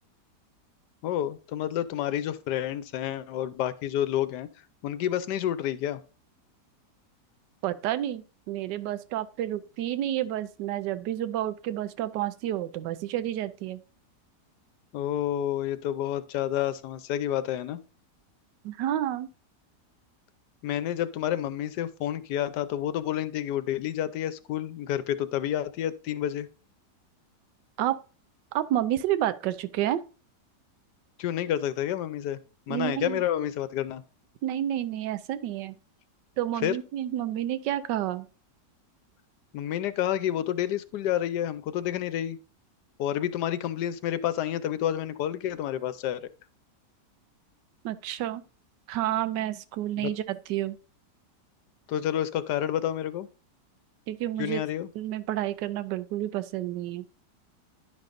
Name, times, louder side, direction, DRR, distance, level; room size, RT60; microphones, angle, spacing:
voice 1, 1.0-4.5 4.8-6.0 14.9-17.8 20.6-26.5 31.2-32.4 32.7-34.0 36.6-36.8 39.5-42.4 43.0-46.3 50.0-50.1 51.9-53.3 54.4-54.9, left 11 dB, 75° left, 1.2 m, -29 dB
voice 2, 7.6-13.8 18.6-19.3 27.8-28.0 28.5-30.0 32.7-33.2 34.4-35.7 36.4-38.3 47.8-48.4 48.9-50.8 54.1-54.6 55.0-57.1, right 12 dB, 90° right, 1.3 m, -30 dB
10.5 x 5.3 x 2.5 m
omnidirectional pair, 1.8 m